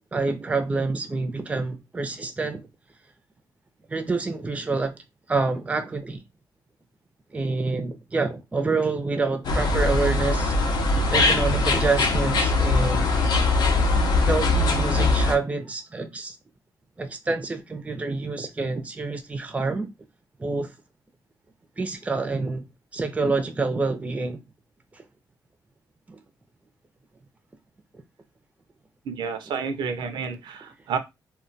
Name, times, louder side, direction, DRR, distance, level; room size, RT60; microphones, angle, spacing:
voice 1, 0.1-2.6 3.9-5.0 5.3-6.2 7.3-10.5 10.9-13.1 14.2-16.4 17.0-19.9 20.4-20.7 21.8-22.7 22.9-24.4 24.9-25.0 26.1-26.2, right 3 dB, 15° right, 0.5 m, -27 dB
sound 1, 9.4-15.3, left 3 dB, 65° left, 0.6 m, -21 dB
voice 2, 29.1-31.0, right 6 dB, 85° right, 0.5 m, -30 dB
2.2 x 2.2 x 3.8 m
cardioid pair, 125°, 8 cm